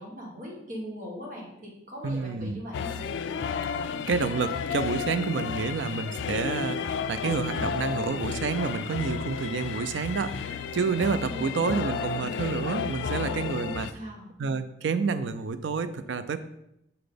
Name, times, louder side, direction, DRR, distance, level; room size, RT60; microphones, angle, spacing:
voice 1, 0.0-3.1 11.2-11.6 13.6-14.3, equal, 45° right, -2 dB, 1.7 m, -40 dB
voice 2, 2.0-2.6 3.7-13.9 14.4-16.4, right 5 dB, 85° right, 11 dB, 0.4 m, -29 dB
sound 1, 2.7-13.9, left 6 dB, 85° left, 0.3 m, -32 dB
5.5 x 4.0 x 5.1 m, 0.82 s
head